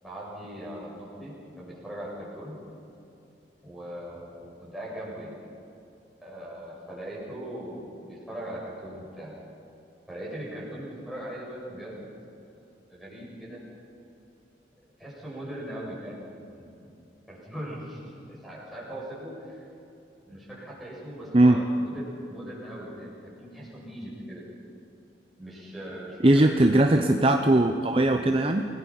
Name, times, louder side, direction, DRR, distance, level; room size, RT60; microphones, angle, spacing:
voice 1, 0.0-2.6 3.6-5.3 6.2-9.3 10.1-12.1 12.9-13.6 15.0-16.8 17.3-19.7 20.3-24.4 25.4-27.1, right 1 dB, ahead, -7 dB, 7.0 m, -40 dB
voice 2, 26.2-28.7, right 1 dB, 30° right, 5 dB, 0.8 m, -20 dB
29.0 x 19.5 x 5.7 m, 2.8 s
head